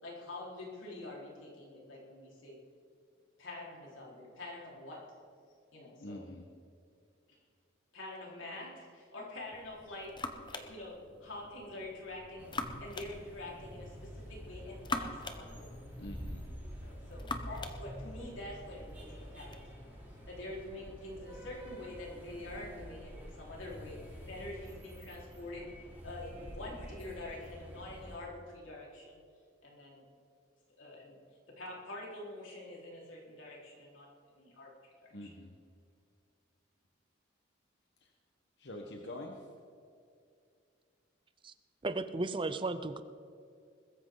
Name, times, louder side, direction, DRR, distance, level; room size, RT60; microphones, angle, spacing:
voice 1, 0.0-2.6 3.4-5.0 5.7-6.2 7.9-10.2 10.5-12.5 12.8-15.8 16.8-19.9 20.3-24.0 24.3-25.7 26.0-29.2 29.6-30.0 30.8-31.2 31.5-35.3, left 2 dB, 90° left, -4 dB, 4.7 m, -46 dB
voice 2, 6.0-6.5 16.0-16.5 35.1-35.6 38.0-38.1 38.6-39.5, left 1 dB, 60° left, 1 dB, 1.4 m, -45 dB
sound 1, 9.5-19.6, left 3 dB, 25° left, 1.0 m, -45 dB
sound 2, 12.4-28.2, equal, 10° right, 4.7 m, -48 dB
voice 3, 41.8-43.0, right 2 dB, 25° right, 11 dB, 0.5 m, -34 dB
21.0 x 14.0 x 4.0 m, 2.4 s
head